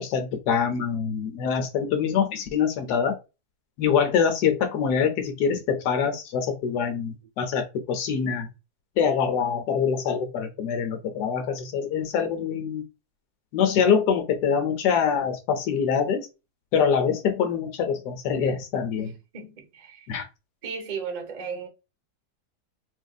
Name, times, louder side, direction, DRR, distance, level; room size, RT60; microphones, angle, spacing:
voice 1, 0.0-3.2 3.8-8.5 9.0-12.8 13.5-16.3 16.7-19.1 20.1-20.3, left 7 dB, 85° left, 1.3 m, -24 dB
voice 2, 19.0-20.1 20.6-21.7, right 5 dB, 40° right, 0.7 m, -35 dB
4.2 x 2.6 x 2.3 m
omnidirectional pair, 1.7 m